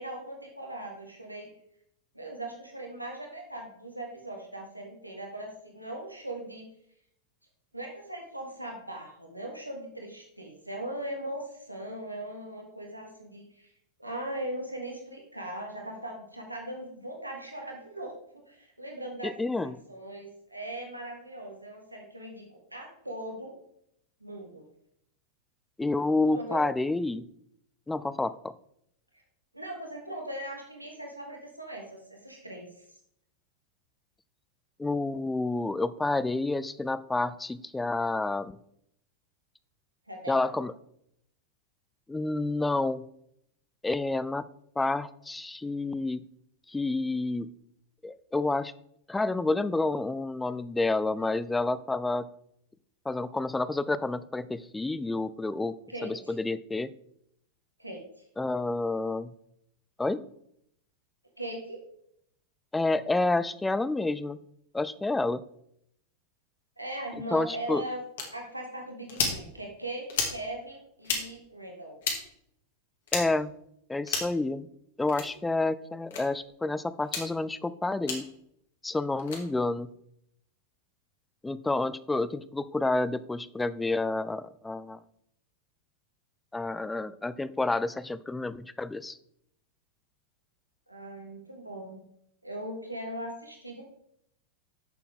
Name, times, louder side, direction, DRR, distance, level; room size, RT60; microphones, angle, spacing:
voice 1, 0.0-1.5 2.1-6.7 7.7-13.7 14.0-19.3 19.6-23.5 24.2-24.6 26.3-26.6 29.1-29.2 29.5-32.8 40.1-40.3 55.9-56.3 57.8-58.2 61.4-61.8 66.8-68.0 68.3-72.0 90.9-92.0 92.4-93.8, right 1 dB, 85° right, 1 dB, 1.6 m, -39 dB
voice 2, 19.2-19.7 25.8-27.3 27.9-28.5 34.8-38.5 40.3-40.7 42.1-43.0 43.8-44.5 44.8-46.2 46.7-47.5 48.0-48.7 49.1-52.3 53.1-55.8 56.0-56.9 58.4-59.3 60.0-60.2 62.7-64.4 64.7-65.4 67.3-67.8 73.1-73.5 73.9-74.7 75.0-78.3 78.8-79.9 81.4-85.0 86.5-89.2, left 2 dB, 10° left, 16 dB, 0.4 m, -29 dB
sound 1, 68.2-68.3 69.1-69.4 70.1-70.4 71.0-71.2 72.0-72.2 73.1-73.2 74.1-74.4 75.1-75.3 76.1-76.2 77.0-77.3 78.1-78.2 79.2-79.4, left 5 dB, 60° left, 2.3 m, -30 dB
10.0 x 6.9 x 3.6 m, 0.72 s
figure-of-eight pair, 90°, 0 cm